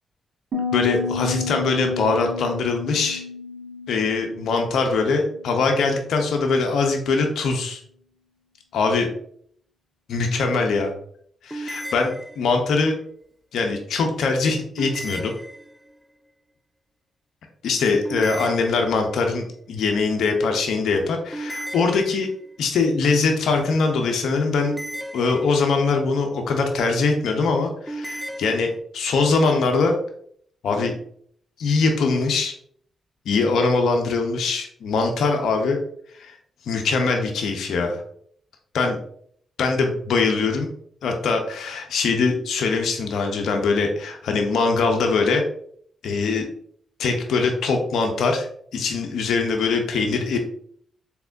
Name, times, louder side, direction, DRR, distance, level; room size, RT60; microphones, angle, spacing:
Piano, 0.5-6.1, left 4 dB, 60° right, 0.9 m, -32 dB
voice 1, 0.7-3.2 3.9-7.8 8.7-9.1 10.1-10.9 11.4-12.9 13.5-15.3 17.6-22.3 22.6-24.7 25.1-29.9 30.6-30.9 31.6-32.5 33.3-35.8 36.2-36.3 36.7-38.0 38.7-39.0 39.6-40.7 41.0-45.4 46.0-46.5 47.0-48.5 48.7-50.4, left 4 dB, 75° left, 3 dB, 0.5 m, -22 dB
sound 1, 11.5-12.8 14.8-16.1 18.0-19.3 21.3-22.6 24.6-25.9 27.9-28.8, right 1 dB, 5° right, 0.4 m, -35 dB
3.4 x 2.9 x 2.5 m, 0.62 s
supercardioid pair, 50°, 0 cm